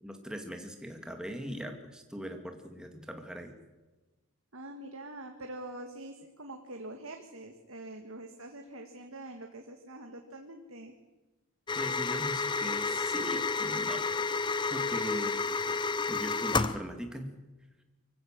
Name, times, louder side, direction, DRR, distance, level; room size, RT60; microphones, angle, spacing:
voice 1, 0.0-3.6 11.8-14.0 14.7-15.4 16.1-17.3, equal, 5° right, 4 dB, 2.2 m, -40 dB
voice 2, 4.5-10.9, right 1 dB, 70° right, 4 dB, 1.8 m, -45 dB
sound 1, 11.7-16.8, left 4 dB, 20° left, 0.7 m, -31 dB
24.5 x 16.0 x 7.5 m, 1.2 s
head